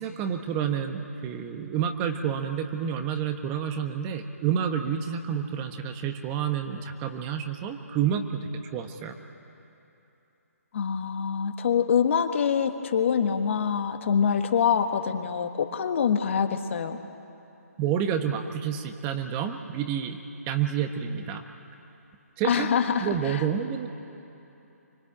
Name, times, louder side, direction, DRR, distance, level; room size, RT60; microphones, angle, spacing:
voice 1, 0.0-9.1 17.8-21.4 22.4-22.7 23.0-23.9, right 8 dB, 20° right, 6 dB, 1.2 m, -29 dB
voice 2, 10.7-17.0 22.4-23.5, left 7 dB, 50° left, 7 dB, 1.5 m, -25 dB
25.0 x 23.0 x 8.7 m, 2.9 s
figure-of-eight pair, 145°, 9 cm